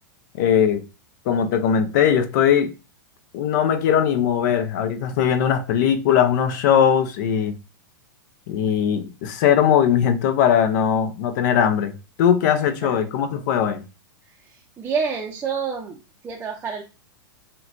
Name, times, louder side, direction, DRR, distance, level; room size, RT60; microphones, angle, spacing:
voice 1, 0.4-0.8 1.3-2.7 3.3-7.5 8.5-11.9 12.2-13.8, left 8 dB, 55° left, 0.7 m, -19 dB
voice 2, 14.4-16.0 16.2-16.8, right 5 dB, 15° right, 0.5 m, -28 dB
5.5 x 2.2 x 2.6 m
hypercardioid pair, 125°, 11 cm